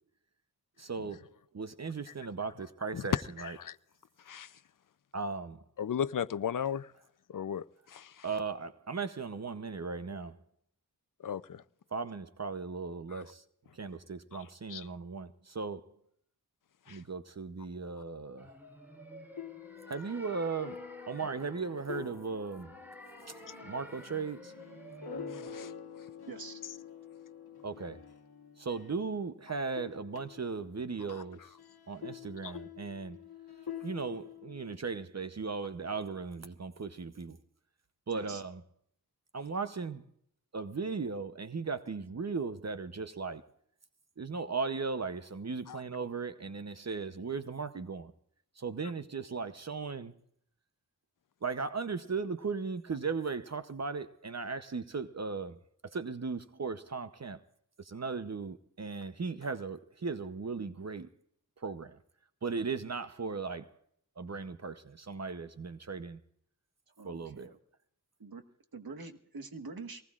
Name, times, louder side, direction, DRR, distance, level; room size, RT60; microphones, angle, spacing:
voice 1, 0.8-1.2 1.5-3.6 5.1-5.6 8.2-10.4 11.9-13.4 13.7-15.9 16.9-18.5 19.9-22.8 23.6-24.5 27.6-28.0 28.6-31.5 31.9-33.2 33.8-37.4 38.1-38.6 39.3-40.0 40.5-43.5 44.2-48.1 48.6-50.1 51.4-57.4 57.8-61.1 61.6-62.0 62.4-63.7 64.2-66.2 67.0-67.5, right 4 dB, 45° right, 0.8 m, -37 dB
voice 2, 2.9-3.8 4.3-4.5 5.8-6.9 7.3-8.2 11.2-11.6 13.1-13.2 14.3-14.4 14.7-14.9 16.9-17.0 25.3-25.7 31.1-31.2 32.4-32.6 45.7-45.8, left 8 dB, 60° left, 0.6 m, -36 dB
sound 1, 18.4-25.5, equal, 5° right, 3.0 m, -51 dB
sound 2, 19.3-29.3 29.6-34.8, left 7 dB, 90° left, 1.3 m, -47 dB
voice 3, 26.3-26.6 38.1-38.4 67.0-67.6 68.2-68.4 68.7-70.0, right 4 dB, 75° right, 1.5 m, -45 dB
24.0 x 19.5 x 2.4 m
wide cardioid pair, 75°, 36 cm